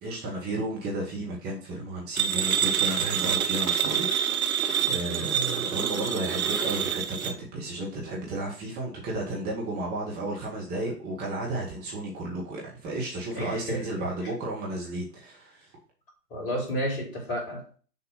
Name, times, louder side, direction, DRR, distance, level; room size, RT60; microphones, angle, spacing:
voice 1, 0.0-15.7, right 1 dB, 20° right, 2.2 m, -33 dB
sound 1, 2.2-7.3, right 8 dB, 60° right, 1.0 m, -27 dB
voice 2, 13.4-14.1 16.3-17.7, equal, 40° left, 4.1 m, -31 dB
6.9 x 5.3 x 5.6 m
figure-of-eight pair, 120°, 49 cm